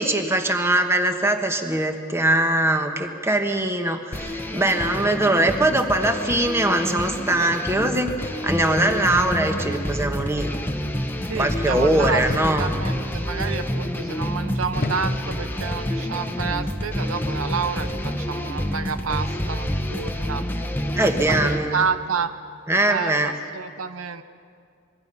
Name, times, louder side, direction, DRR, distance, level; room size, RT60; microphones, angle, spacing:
voice 1, 0.0-8.1 8.4-10.5 11.4-12.6 21.0-21.9 22.7-23.3, right 1 dB, 15° right, 5 dB, 1.4 m, -22 dB
sound 1, 4.1-21.6, equal, 10° left, 1.1 m, -28 dB
sound 2, 8.2-8.7 10.2-10.6 10.9-11.3 12.3-12.8 13.5-13.9 14.7-15.4 16.3-16.6, left 2 dB, 45° left, 0.8 m, -35 dB
voice 2, 11.3-20.4 20.9-22.3 22.9-24.2, right 5 dB, 90° right, 10 dB, 0.9 m, -29 dB
25.5 x 22.5 x 5.6 m, 2.2 s
head